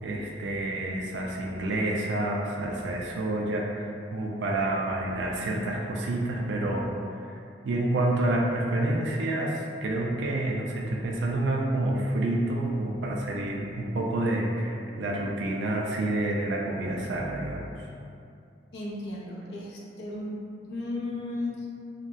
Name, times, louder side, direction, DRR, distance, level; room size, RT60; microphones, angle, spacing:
voice 1, 0.0-6.9 7.3-17.7, right 1 dB, 85° right, -1 dB, 0.4 m, -28 dB
voice 2, 18.7-20.4 20.7-21.7, left 2 dB, 70° left, -5 dB, 0.6 m, -34 dB
3.9 x 2.0 x 2.5 m, 2.5 s
head